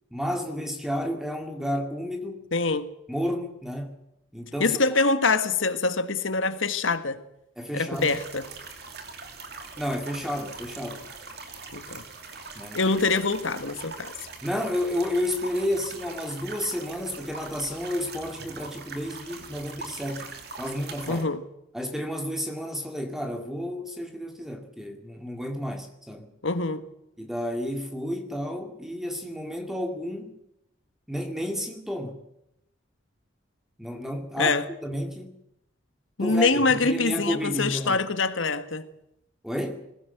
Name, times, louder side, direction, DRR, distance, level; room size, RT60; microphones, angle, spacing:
voice 1, 0.1-2.5 3.1-4.0 4.3-4.8 7.6-8.2 9.8-11.1 12.6-12.8 14.4-20.3 20.6-21.2 21.7-26.3 27.2-30.4 31.1-32.2 33.8-34.5 34.8-35.3 36.2-38.0 39.4-39.8, equal, ahead, 2.2 m, -31 dB
voice 2, 2.5-2.9 4.6-7.2 7.7-8.5 11.7-12.0 12.7-14.1 21.1-21.4 26.4-26.8 34.4-34.7 36.2-38.9, left 3 dB, 80° left, 1.6 m, -24 dB
sound 1, 7.9-21.2, right 4 dB, 55° right, 2.9 m, -42 dB
21.0 x 16.5 x 8.0 m
head